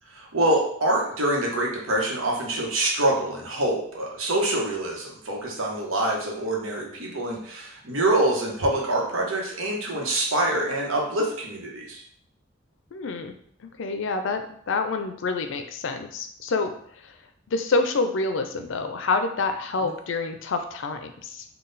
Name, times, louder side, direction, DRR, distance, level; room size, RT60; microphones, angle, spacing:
voice 1, 0.1-12.0 19.8-19.9, right 1 dB, 90° right, -1 dB, 1.0 m, -25 dB
voice 2, 12.9-13.3 13.8-16.8 17.5-21.4, left 3 dB, 70° left, 7 dB, 0.4 m, -27 dB
3.9 x 2.3 x 3.9 m, 0.64 s
head